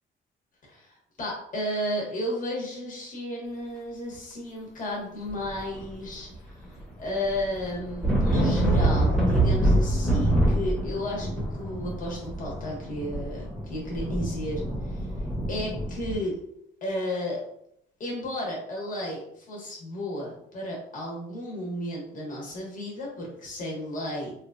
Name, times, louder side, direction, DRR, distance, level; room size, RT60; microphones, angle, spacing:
voice 1, 0.6-6.6 7.0-15.1 15.5-16.4 16.8-17.4 18.0-24.3, left 1 dB, 40° left, -3 dB, 1.1 m, -33 dB
sound 1, 5.4-6.3 6.6-16.1, right 1 dB, ahead, 0.9 m, -25 dB
3.0 x 2.3 x 2.6 m, 0.73 s
cardioid pair, 90°, 20 cm